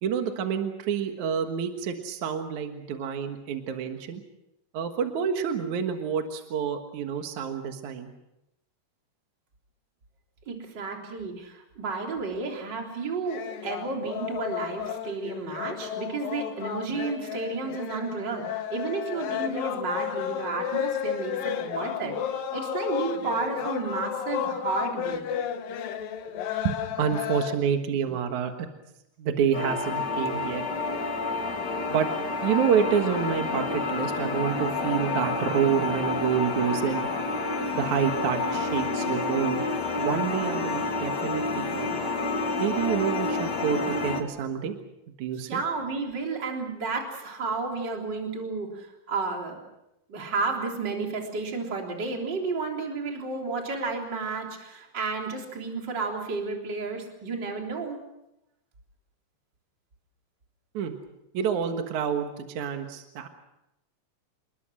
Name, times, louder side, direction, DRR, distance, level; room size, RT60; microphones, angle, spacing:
voice 1, 0.0-4.2 4.7-8.1 26.6-28.7 29.2-30.6 31.9-32.1 32.4-37.1 37.7-39.6 40.0-42.0 42.6-44.8 45.2-45.6 60.7-60.9 61.3-63.3, right 8 dB, 60° right, 5 dB, 2.7 m, -28 dB
voice 2, 10.5-22.2 22.5-25.3 45.4-49.6 50.1-58.0, right 4 dB, 30° right, 1 dB, 3.9 m, -32 dB
sound 1, 13.3-27.6, left 9 dB, 75° left, 3.0 m, -32 dB
sound 2, 29.5-44.2, left 3 dB, 35° left, 2.2 m, -29 dB
28.5 x 20.5 x 6.3 m, 0.88 s
omnidirectional pair, 4.1 m